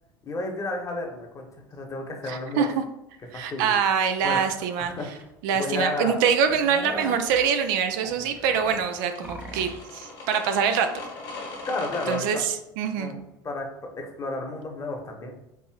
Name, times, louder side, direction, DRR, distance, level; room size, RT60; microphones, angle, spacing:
voice 1, 0.2-2.6 3.3-3.7 4.2-4.4 4.8-5.1 5.5-6.2 11.7-12.4 13.0-13.7 14.0-15.3, left 2 dB, 25° left, 2 dB, 1.0 m, -32 dB
voice 2, 2.2-2.8 3.3-4.9 5.4-11.0 12.1-13.1, right 7 dB, 65° right, 7 dB, 0.4 m, -24 dB
sound 1, 4.6-4.7 5.2-5.3 5.6-5.8 6.1-9.9, right 1 dB, 15° right, 0.6 m, -40 dB
sound 2, 8.7-12.2, left 3 dB, 70° left, 1.4 m, -38 dB
4.8 x 2.5 x 2.4 m, 0.86 s
hypercardioid pair, 70°, 12 cm